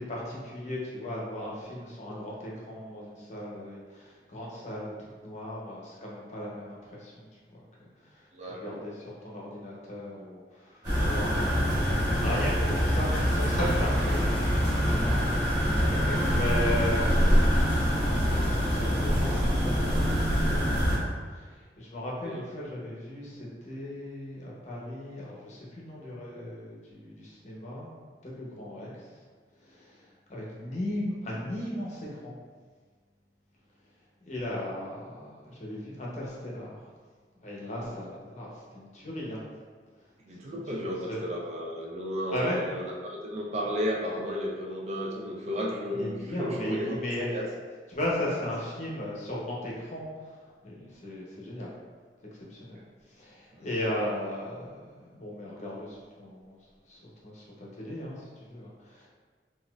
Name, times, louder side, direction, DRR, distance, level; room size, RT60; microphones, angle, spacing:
voice 1, 0.0-4.9 5.2-7.3 7.5-7.9 8.6-20.9 21.3-21.5 21.8-27.9 28.2-28.9 29.6-30.0 30.3-32.3 34.2-36.8 37.4-39.4 40.5-41.2 42.3-42.6 45.9-47.4 47.9-50.1 50.6-51.7 52.5-52.8 53.2-56.6 56.9-59.1, left 1 dB, 40° left, -5 dB, 0.7 m, -36 dB
voice 2, 8.3-8.8 22.2-22.4 40.2-47.0 47.3-47.5 52.7-52.8 53.5-53.6, equal, 40° right, -2 dB, 0.4 m, -33 dB
sound 1, 10.8-21.0, equal, 20° right, 1.3 m, -25 dB
4.0 x 2.5 x 2.3 m, 1.5 s
head